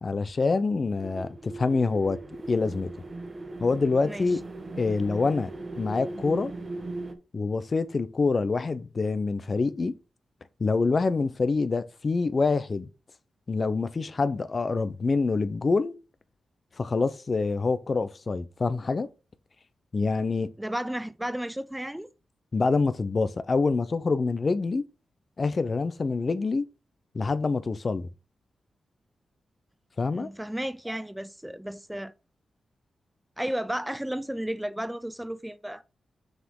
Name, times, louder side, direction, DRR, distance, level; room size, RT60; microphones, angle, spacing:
voice 1, 0.0-2.2 2.5-2.9 3.6-4.4 4.8-5.5 5.8-6.5 7.3-9.9 10.6-12.9 13.5-16.0 16.8-19.1 19.9-20.5 22.5-24.8 25.4-26.6 27.1-28.1 30.0-30.3, left 4 dB, 45° left, 0.8 m, -26 dB
sound 1, 0.9-7.1, right 2 dB, 40° right, 1.3 m, -38 dB
voice 2, 4.0-4.4 20.6-22.1 30.1-32.1 33.4-35.8, right 1 dB, 5° right, 0.5 m, -33 dB
6.6 x 4.9 x 3.8 m
cardioid pair, 70°, 0 cm